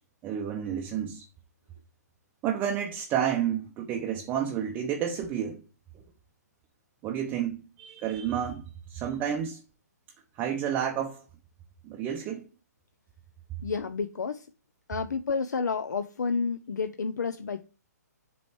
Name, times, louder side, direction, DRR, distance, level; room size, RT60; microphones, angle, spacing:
voice 1, 0.2-1.3 2.4-5.6 7.0-8.6 8.9-9.6 10.4-11.2 11.8-12.5, right 9 dB, 20° right, 0.6 m, -30 dB
voice 2, 13.6-14.5 14.9-17.7, left 5 dB, 75° left, 0.5 m, -30 dB
7.7 x 3.1 x 4.4 m
figure-of-eight pair, 135°, 10 cm